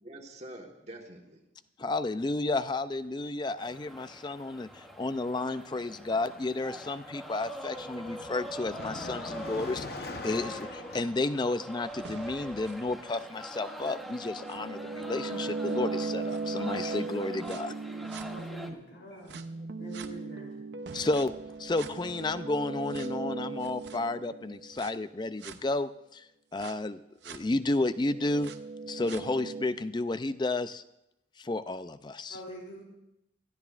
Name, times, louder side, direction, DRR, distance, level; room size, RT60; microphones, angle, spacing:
voice 1, 0.0-1.4 18.6-19.3 19.6-20.0, right 1 dB, 35° right, 2 dB, 1.4 m, -48 dB
voice 2, 1.8-17.7 20.9-21.3 21.6-28.5 28.9-30.8 31.4-32.4, left 2 dB, 25° left, 13 dB, 0.4 m, -32 dB
Car passing by, 3.6-3.8 4.1-11.1, left 2 dB, 55° left, 0.9 m, -44 dB
sound 1, 3.6-18.7, equal, ahead, 0.8 m, -44 dB
sound 2, 11.8-18.7 19.3-24.9 25.4-25.6 26.6-26.7 27.2-27.4 27.9-29.7, right 4 dB, 65° right, 0.7 m, -38 dB
voice 3, 18.2-19.4 19.8-20.6 32.3-32.8, equal, 70° left, -1 dB, 3.3 m, -45 dB
22.5 x 14.0 x 2.5 m, 0.86 s
head